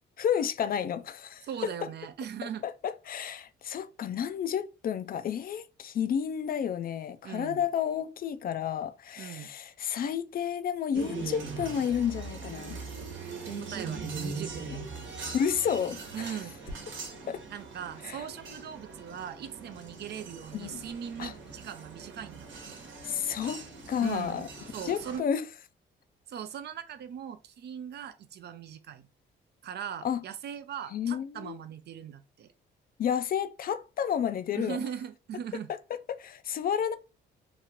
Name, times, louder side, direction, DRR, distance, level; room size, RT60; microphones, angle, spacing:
voice 1, 0.2-1.7 2.6-12.8 15.3-16.4 17.3-17.4 18.0-18.3 20.5-20.8 21.2-21.3 23.0-24.5 24.8-25.4 30.0-30.2 30.9-31.6 33.0-34.8 36.1-36.9, left 8 dB, 50° left, 0.4 m, -31 dB
voice 2, 1.4-2.6 7.2-7.6 9.2-9.5 13.6-14.8 16.1-16.6 17.5-23.1 24.0-24.4 24.7-25.3 26.3-29.1 29.6-32.5 34.5-35.7, right 9 dB, 55° right, 0.4 m, -40 dB
sound 1, 10.9-25.2, right 4 dB, 75° right, 1.0 m, -41 dB
2.9 x 2.4 x 3.0 m
cardioid pair, 90°, 20 cm